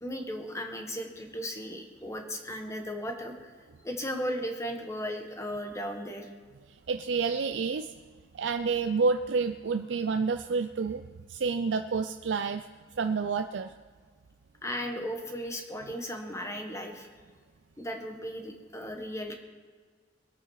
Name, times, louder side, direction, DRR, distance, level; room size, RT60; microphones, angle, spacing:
voice 1, 0.0-3.5 3.8-6.3 14.6-17.1 17.8-19.4, equal, 15° left, 3 dB, 1.5 m, -36 dB
voice 2, 6.9-7.9 8.3-11.0 11.3-12.7 13.0-13.7, right 4 dB, 80° right, 7 dB, 0.5 m, -29 dB
21.0 x 8.7 x 4.8 m, 1.5 s
head